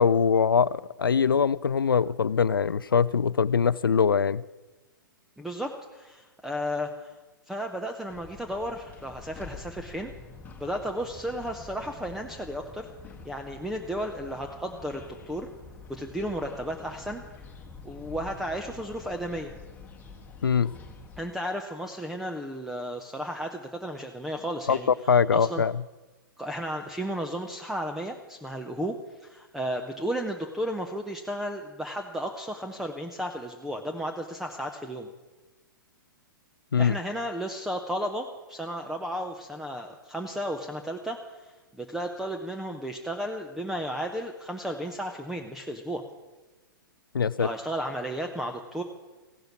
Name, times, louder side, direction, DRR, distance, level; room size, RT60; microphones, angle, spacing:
voice 1, 0.0-4.4 20.4-20.7 24.7-24.8 25.1-25.7 36.7-37.0 47.1-47.5, left 6 dB, 75° left, 19 dB, 0.4 m, -22 dB
voice 2, 5.4-7.2 7.5-10.1 10.6-12.9 13.2-15.5 15.9-17.4 17.8-19.5 21.2-25.6 26.4-35.1 36.8-46.0 47.4-48.8, equal, ahead, 3 dB, 0.9 m, -34 dB
sound 1, 8.1-21.2, left 4 dB, 15° left, 1.7 m, -47 dB
16.0 x 11.5 x 6.2 m, 1.2 s
figure-of-eight pair, 110°, 12 cm